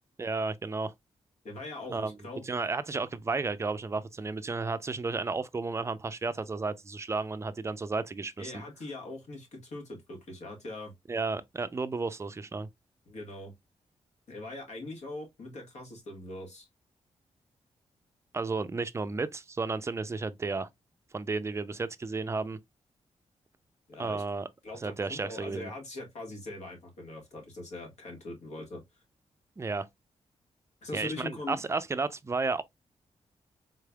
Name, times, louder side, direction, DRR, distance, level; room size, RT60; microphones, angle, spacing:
voice 1, 0.2-0.9 1.9-2.2 2.4-8.5 11.1-12.7 18.3-20.7 21.1-22.6 24.0-24.5 24.8-25.7 29.6-29.9 30.9-32.6, right 3 dB, 25° right, 0.4 m, -33 dB
voice 2, 1.4-2.4 8.4-10.9 13.1-13.5 14.3-16.7 23.9-24.2 24.6-28.8 30.8-31.6, left 2 dB, 70° left, 1.5 m, -41 dB
3.8 x 3.2 x 2.2 m
cardioid pair, 90°, 12 cm